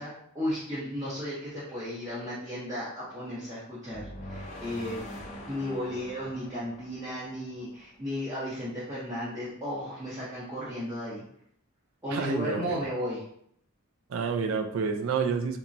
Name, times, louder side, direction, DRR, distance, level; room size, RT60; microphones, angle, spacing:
voice 1, 0.0-11.2 12.0-13.2, equal, 15° right, -10 dB, 0.6 m, -34 dB
sound 1, 3.9-8.0, left 1 dB, 30° left, 0.4 m, -43 dB
voice 2, 12.1-12.8 14.1-15.6, right 5 dB, 65° right, 5 dB, 0.3 m, -29 dB
2.9 x 2.2 x 2.5 m, 0.69 s
head